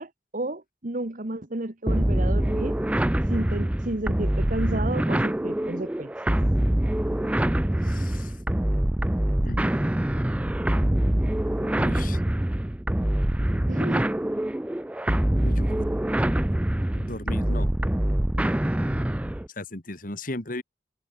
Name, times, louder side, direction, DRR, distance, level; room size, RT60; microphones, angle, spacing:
voice 1, 0.0-2.8 3.3-6.1 13.7-14.1, right 1 dB, 45° right, 1.5 m, -32 dB
sound 1, 1.9-19.5, right 1 dB, 5° right, 0.3 m, -24 dB
voice 2, 7.8-8.3 9.4-9.6 11.7-12.2 15.3-15.9 16.9-17.7 19.6-20.6, left 1 dB, 50° left, 2.5 m, -36 dB
head